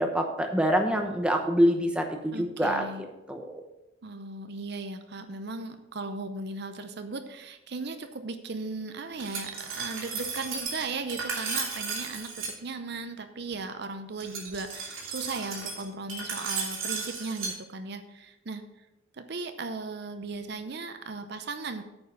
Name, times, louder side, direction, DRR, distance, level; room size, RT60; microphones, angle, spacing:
voice 1, 0.0-3.6, equal, 5° right, 3 dB, 0.8 m, -26 dB
voice 2, 2.3-3.0 4.0-18.9 19.1-21.8, right 3 dB, 55° right, 8 dB, 0.6 m, -37 dB
Glass, 9.2-12.5 14.2-17.5, right 4 dB, 80° right, 2.8 m, -35 dB
8.8 x 5.4 x 6.8 m, 0.96 s
head